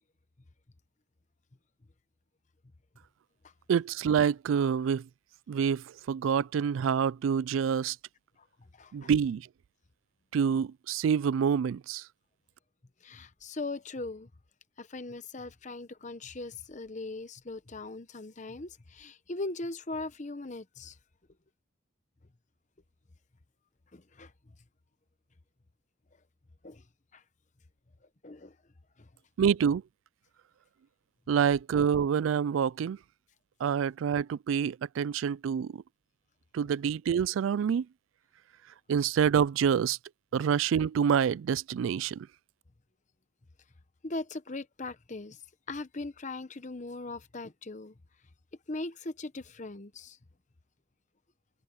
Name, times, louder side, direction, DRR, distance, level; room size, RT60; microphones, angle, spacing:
voice 1, 3.7-5.1 5.5-8.0 8.9-9.5 10.3-12.0 29.4-29.8 31.3-33.0 33.6-35.8 36.5-37.9 38.9-40.0 40.3-42.3, right 7 dB, 80° right, 0.3 m, -27 dB
voice 2, 8.8-9.1 13.0-14.3 14.8-21.0 23.9-24.3 26.6-26.8 27.1-27.2 28.2-28.5 29.0-29.1 44.0-45.4 45.7-47.9 48.7-50.2, left 2 dB, 35° left, 0.9 m, -39 dB
head